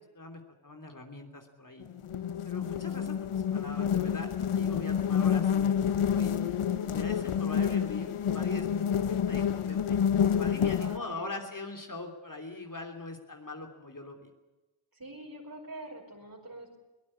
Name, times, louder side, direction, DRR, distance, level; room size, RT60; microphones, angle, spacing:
voice 1, 0.1-1.8 2.4-8.7 9.1-10.0 10.3-14.3, left 2 dB, 40° left, 3 dB, 3.2 m, -42 dB
sound 1, 1.8-11.0, left 8 dB, 85° left, 1.0 m, -28 dB
voice 2, 10.6-11.4 14.9-16.8, right 1 dB, 45° right, 1 dB, 5.6 m, -45 dB
23.0 x 18.0 x 8.8 m, 1.1 s
wide cardioid pair, 65°, 49 cm